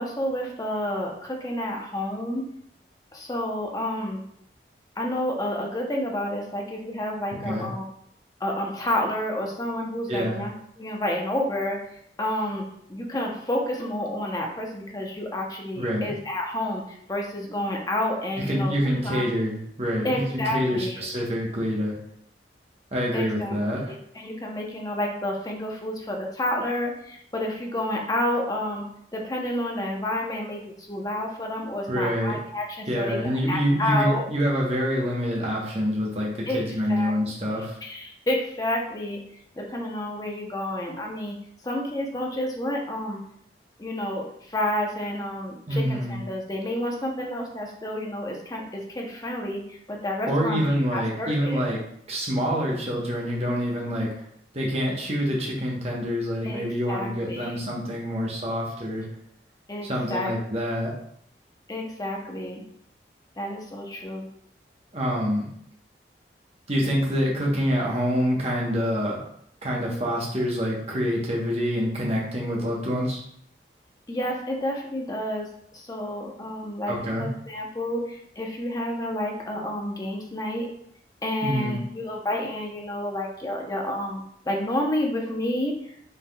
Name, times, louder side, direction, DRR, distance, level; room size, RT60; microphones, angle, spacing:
voice 1, 0.0-2.4 3.1-4.2 5.0-7.9 8.4-11.9 12.2-12.6 12.9-18.7 19.0-19.2 20.0-21.0 23.1-23.6 24.1-28.9 29.1-34.2 36.4-36.6 36.9-37.1 37.8-39.2 39.6-41.4 41.6-43.2 43.8-50.7 50.9-51.6 56.4-57.6 59.7-60.3 61.7-62.6 63.4-64.3 74.1-80.7 81.2-85.9, left 1 dB, 20° left, 0 dB, 0.7 m, -30 dB
voice 2, 10.1-10.4 15.8-16.1 18.5-21.9 22.9-23.8 31.9-32.3 32.9-37.8 45.7-46.2 50.3-51.8 52.1-54.1 54.5-59.1 59.8-60.9 64.9-65.5 66.7-69.2 69.6-73.2 76.9-77.3 81.4-81.8, equal, 35° right, -3 dB, 1.0 m, -26 dB
5.5 x 3.5 x 2.3 m, 0.70 s
head